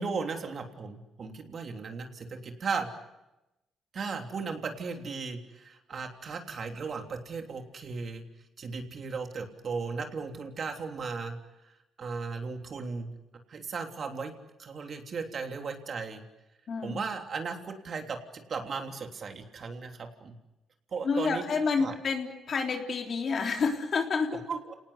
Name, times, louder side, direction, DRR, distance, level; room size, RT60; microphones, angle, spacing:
voice 1, 0.0-2.9 3.9-8.2 8.6-11.4 12.0-13.1 13.5-14.3 14.6-16.2 16.8-20.3 20.9-21.4 21.8-21.9 24.5-24.7, right 4 dB, 50° right, 4 dB, 3.3 m, -36 dB
voice 2, 16.7-17.0 21.0-24.4, left 5 dB, 50° left, 3 dB, 3.5 m, -29 dB
29.5 x 19.0 x 8.1 m, 0.96 s
cardioid pair, 90°, 0 cm